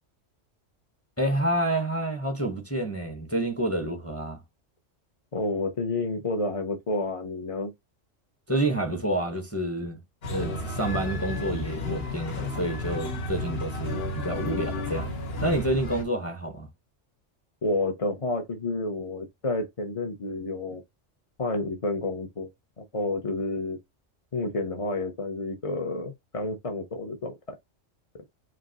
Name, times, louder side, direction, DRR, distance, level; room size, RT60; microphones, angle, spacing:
voice 1, 1.2-4.4 8.5-10.0 10.3-15.1 15.4-16.7, right 1 dB, 10° left, 1.0 m, -28 dB
voice 2, 5.3-7.7 17.6-20.8 21.4-22.5 22.8-23.8 24.3-27.6, left 2 dB, 35° left, 0.7 m, -30 dB
sound 1, 10.2-16.0, left 2 dB, 55° left, 1.3 m, -32 dB
5.1 x 2.9 x 2.9 m
omnidirectional pair, 1.3 m